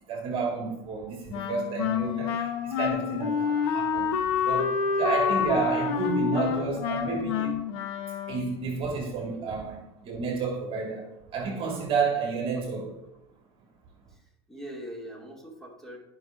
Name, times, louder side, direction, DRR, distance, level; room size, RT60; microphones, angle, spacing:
voice 1, 0.1-7.6 8.3-12.9, right 4 dB, 40° right, 1.8 m, -31 dB
Wind instrument woodwind instrument, 1.3-8.6, left 7 dB, 75° left, 1.0 m, -28 dB
voice 2, 14.1-16.0, equal, 5° left, 2.4 m, -42 dB
13.5 x 5.4 x 2.5 m
hypercardioid pair, 100°, 14 cm